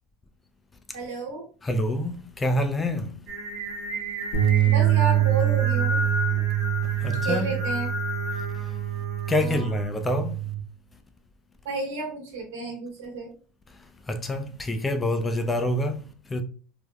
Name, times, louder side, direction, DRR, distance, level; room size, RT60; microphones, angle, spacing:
voice 1, 0.9-1.4 4.6-6.0 6.3-6.4 7.2-7.9 9.4-9.7 11.6-13.3, right 3 dB, 80° right, 1.1 m, -31 dB
voice 2, 1.6-3.1 6.8-7.6 8.4-8.7 9.3-10.4 13.7-16.4, left 1 dB, 15° left, 0.4 m, -27 dB
Singing, 3.3-9.9, left 2 dB, 45° right, 1.0 m, -33 dB
sound 1, 4.3-10.6, right 13 dB, 80° left, 1.1 m, -25 dB
3.2 x 2.0 x 2.3 m
supercardioid pair, 105°, 0 cm